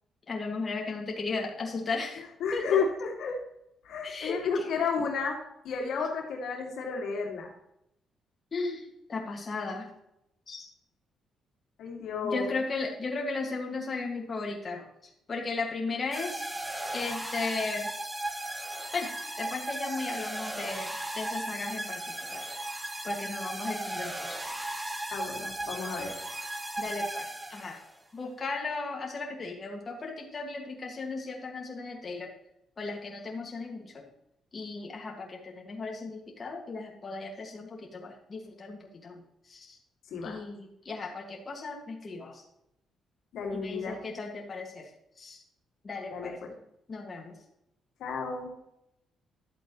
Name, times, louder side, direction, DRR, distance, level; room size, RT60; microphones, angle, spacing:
voice 1, 0.3-2.8 4.0-4.9 8.5-9.9 10.5-10.7 12.2-16.4 16.9-17.9 18.9-22.4 22.8-24.4 26.8-27.8 28.1-32.3 32.8-34.1 34.5-39.8 40.2-42.4 43.5-44.9 45.2-45.4 45.8-46.4 46.9-47.4, left 3 dB, 35° left, 0 dB, 2.0 m, -36 dB
voice 2, 2.4-3.4 3.8-5.4 5.6-7.5 11.8-12.5 25.1-26.2 40.1-40.4 43.3-44.0 46.1-46.3 48.0-48.5, left 5 dB, 75° left, 0 dB, 2.4 m, -32 dB
sound 1, 16.1-27.9, right 1 dB, 10° right, 1.2 m, -36 dB
12.0 x 8.0 x 3.1 m, 0.80 s
cardioid pair, 90°, 0 cm